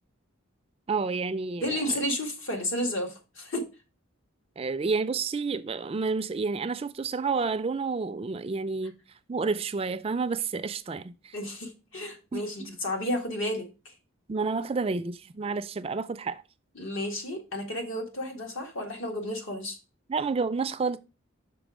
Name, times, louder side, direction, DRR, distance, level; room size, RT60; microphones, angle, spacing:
voice 1, 0.9-1.8 4.6-8.9 9.3-11.3 12.3-12.7 14.3-16.4 20.1-21.0, right 4 dB, 30° right, 0.3 m, -30 dB
voice 2, 1.6-3.6 11.3-13.9 16.7-19.8, left 1 dB, 70° left, 1.9 m, -32 dB
6.1 x 4.8 x 4.9 m
head